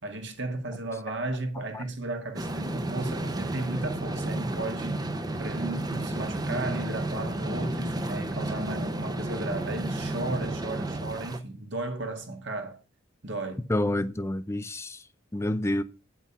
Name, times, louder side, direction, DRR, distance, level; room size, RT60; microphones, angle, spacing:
voice 1, 0.0-5.0 5.4-12.8 13.2-13.6, right 2 dB, 60° right, 1.8 m, -34 dB
sound 1, 2.4-11.4, right 1 dB, 20° right, 0.8 m, -32 dB
voice 2, 13.7-15.1 15.3-15.8, left 1 dB, 15° left, 0.5 m, -28 dB
8.7 x 5.8 x 5.7 m
head